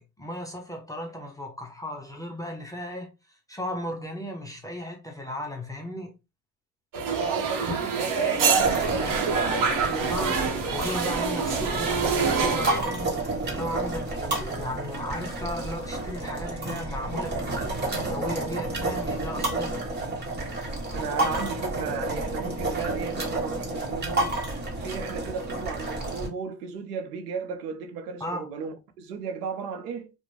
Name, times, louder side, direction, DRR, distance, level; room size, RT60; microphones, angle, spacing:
voice 1, 0.0-3.1 3.5-6.2 10.1-10.4 10.7-13.2 13.4-19.8 28.2-28.5, left 1 dB, 10° left, 0.3 m, -35 dB
sound 1, 6.9-12.8, right 5 dB, 45° right, 0.9 m, -26 dB
voice 2, 7.1-10.3 20.9-24.4 24.8-30.1, right 6 dB, 90° right, 0.7 m, -35 dB
sound 2, 8.6-26.3, right 2 dB, 20° right, 1.1 m, -30 dB
2.5 x 2.2 x 3.0 m
supercardioid pair, 90°, 46 cm